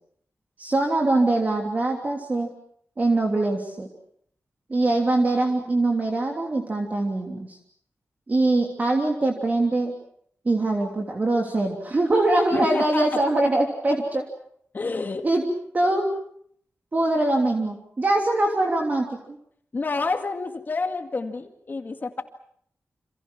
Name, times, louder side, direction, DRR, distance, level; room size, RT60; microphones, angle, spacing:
voice 1, 0.6-2.5 3.0-3.9 4.7-7.6 8.3-9.9 10.4-14.2 15.2-15.4 15.7-16.1 16.9-19.2, right 2 dB, 35° right, 1 dB, 3.2 m, -23 dB
voice 2, 12.5-13.2 14.7-15.3 19.7-22.2, left 3 dB, 40° left, 6 dB, 2.1 m, -28 dB
28.5 x 27.5 x 6.1 m, 0.66 s
wide cardioid pair, 150°, 5 cm